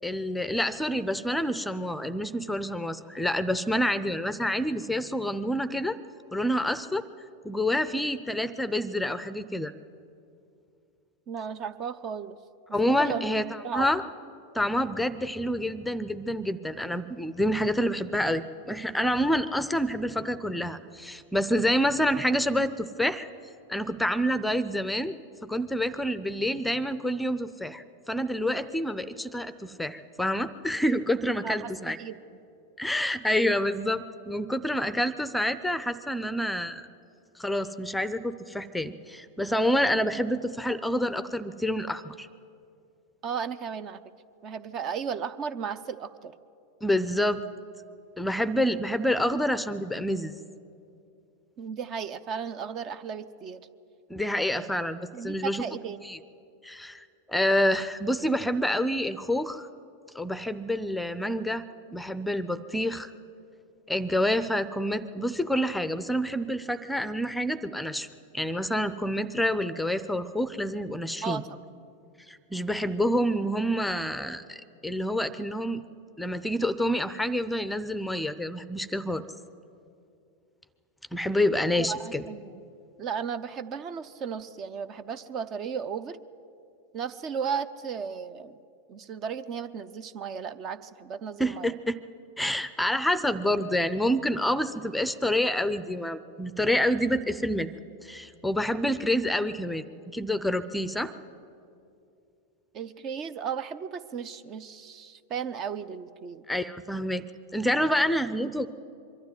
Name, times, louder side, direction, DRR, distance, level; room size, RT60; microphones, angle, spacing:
voice 1, 0.0-6.0 6.3-7.0 7.4-9.7 12.7-14.0 14.5-23.3 23.7-25.2 25.4-32.0 32.8-36.9 37.4-42.3 46.8-47.4 48.2-50.4 54.1-55.6 56.0-56.2 56.6-59.7 60.1-61.6 61.9-63.1 63.9-68.1 68.3-71.4 72.3-75.8 76.2-79.2 81.1-82.3 91.4-92.0 92.4-97.7 98.0-99.8 100.1-101.1 106.5-107.3 107.5-108.7, equal, 5° left, 14 dB, 0.6 m, -28 dB
voice 2, 11.3-12.4 12.8-13.3 13.6-13.9 31.4-32.2 43.2-44.0 44.4-46.3 51.6-53.7 54.5-54.7 55.1-56.0 71.2-71.6 81.7-82.6 83.0-86.2 86.9-88.6 88.9-91.7 102.7-106.5, right 7 dB, 35° right, 14 dB, 0.7 m, -35 dB
23.0 x 12.5 x 9.4 m, 2.6 s
figure-of-eight pair, 90°, 0 cm